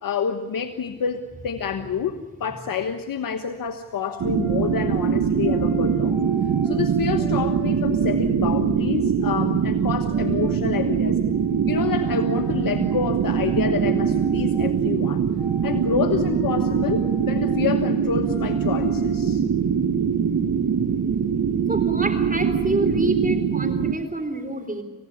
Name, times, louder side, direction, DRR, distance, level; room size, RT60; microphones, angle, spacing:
voice 1, 0.0-6.2 6.6-11.2 11.7-15.2 15.6-19.4, left 7 dB, 70° left, 7 dB, 1.3 m, -28 dB
sound 1, 4.0-5.0 5.4-8.5 10.1-10.6 11.3-14.7 15.4-15.9 16.2-17.7 18.2-19.2, equal, 5° left, 6.1 m, -44 dB
sound 2, 4.2-23.9, right 7 dB, 65° right, 1.3 m, -22 dB
voice 2, 21.7-24.8, right 2 dB, 25° right, 8 dB, 4.0 m, -27 dB
27.5 x 16.5 x 9.8 m, 1.3 s
cardioid pair, 50°, 35 cm